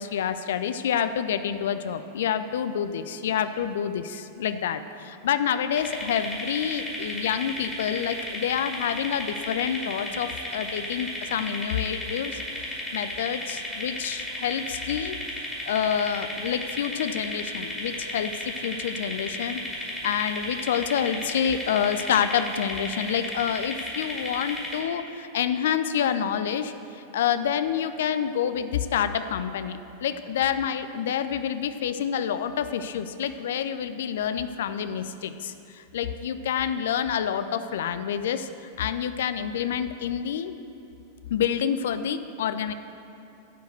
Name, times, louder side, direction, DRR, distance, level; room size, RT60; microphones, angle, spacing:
voice 1, 0.0-15.2 15.7-19.6 20.0-38.5 38.8-40.5 41.3-42.7, left 8 dB, 60° left, 11 dB, 0.4 m, -28 dB
sound 1, 5.8-24.8, left 1 dB, 5° left, 2.3 m, -34 dB
11.0 x 4.6 x 7.9 m, 2.8 s
figure-of-eight pair, 90°, 0 cm